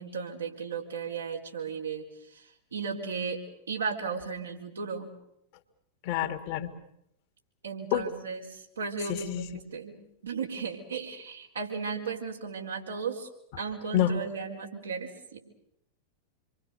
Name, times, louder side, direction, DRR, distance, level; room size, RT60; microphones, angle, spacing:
voice 1, 0.0-2.0 2.3-3.4 3.7-5.1 7.6-10.0 10.2-13.3 13.6-15.4, right 5 dB, 70° right, 0 dB, 4.3 m, -35 dB
voice 2, 6.0-6.7 7.9-8.1 9.1-9.4 13.9-14.1, left 12 dB, 45° left, 7 dB, 2.2 m, -27 dB
27.5 x 23.5 x 6.8 m, 0.78 s
figure-of-eight pair, 90°, 0 cm